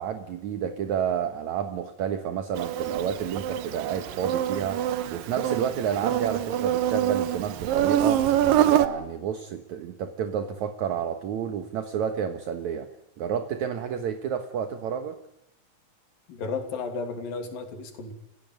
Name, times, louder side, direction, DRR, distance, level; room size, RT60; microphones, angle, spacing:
voice 1, 0.0-4.8 5.1-8.2 8.7-12.9 13.2-15.2, right 8 dB, 65° right, 7 dB, 2.6 m, -30 dB
Insect, 2.6-8.9, right 11 dB, 80° right, 3.0 m, -25 dB
voice 2, 16.3-18.1, left 4 dB, 85° left, 6 dB, 4.7 m, -33 dB
30.0 x 16.0 x 9.5 m, 0.83 s
omnidirectional pair, 3.9 m